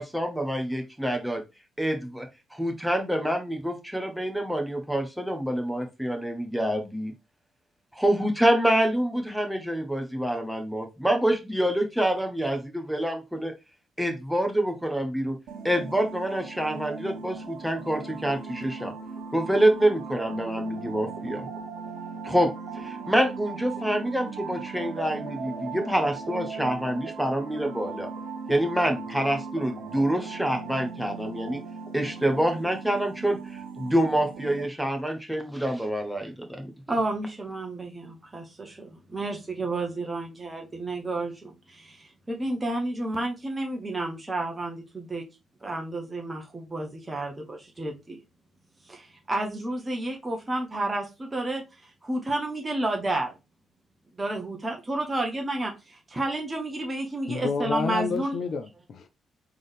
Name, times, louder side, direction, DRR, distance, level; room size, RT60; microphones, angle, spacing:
voice 1, 0.0-1.4 1.8-2.3 2.5-7.1 7.9-13.5 14.0-15.4 15.6-18.9 19.3-21.5 22.2-22.5 22.8-28.1 28.5-31.6 31.9-33.4 33.8-36.7, right 1 dB, 5° right, 1.2 m, -26 dB
sound 1, 15.5-34.7, right 5 dB, 65° right, 0.7 m, -38 dB
voice 2, 36.9-45.2 45.6-48.2 48.9-51.6 52.0-53.3 54.2-58.3, right 2 dB, 25° right, 1.3 m, -31 dB
voice 3, 57.3-59.1, left 5 dB, 55° left, 0.5 m, -29 dB
3.8 x 3.6 x 3.4 m
figure-of-eight pair, 40°, 0 cm